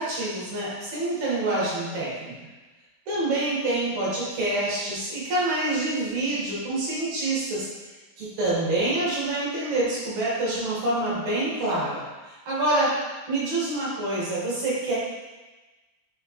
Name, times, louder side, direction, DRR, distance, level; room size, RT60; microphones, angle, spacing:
voice 1, 0.0-2.3 3.1-7.7 8.2-12.9 13.3-14.9, right 2 dB, 55° right, -7 dB, 2.7 m, -26 dB
6.4 x 4.7 x 3.1 m, 1.2 s
omnidirectional pair, 4.2 m